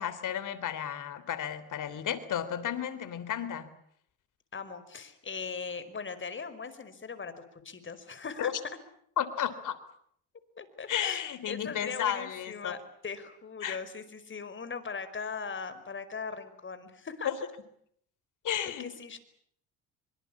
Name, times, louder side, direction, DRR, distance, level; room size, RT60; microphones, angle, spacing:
voice 1, 0.0-3.7 8.4-8.5 9.2-9.8 10.9-12.8 13.6-13.8 17.2-17.3 18.4-18.9, left 9 dB, 55° left, 14 dB, 3.6 m, -33 dB
voice 2, 4.5-8.5 10.6-12.8 13.0-17.3 18.8-19.2, left 5 dB, 35° left, 12 dB, 5.1 m, -39 dB
25.0 x 25.0 x 8.6 m, 0.67 s
supercardioid pair, 85°, 36 cm